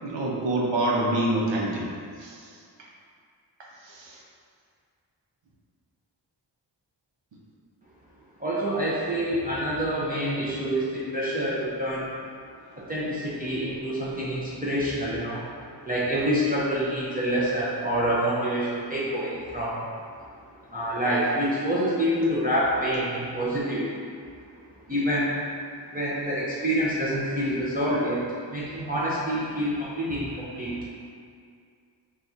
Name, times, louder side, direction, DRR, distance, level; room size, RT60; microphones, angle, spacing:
voice 1, 0.0-1.9 2.2-2.4 3.9-4.2, right 1 dB, 80° right, -3 dB, 0.8 m, -26 dB
voice 2, 8.4-12.1 12.8-15.5 15.8-19.9 20.7-24.0 24.9-25.3 25.9-30.9, equal, 20° right, -9 dB, 0.6 m, -27 dB
5.8 x 2.4 x 2.6 m, 2.3 s
wide cardioid pair, 115°, 44 cm